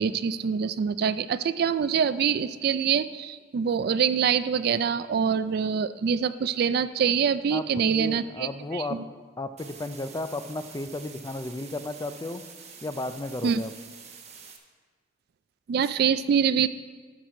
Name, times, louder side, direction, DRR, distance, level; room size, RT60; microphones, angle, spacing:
voice 1, 0.0-9.0 13.4-13.6 15.7-16.7, right 7 dB, 55° right, 15 dB, 0.3 m, -25 dB
voice 2, 7.5-9.0 9.4-12.4 12.8-13.7, left 2 dB, 20° left, 10 dB, 0.4 m, -34 dB
sound 1, 9.6-14.6, right 6 dB, 35° right, 0.9 m, -47 dB
13.0 x 4.7 x 5.8 m, 1.5 s
head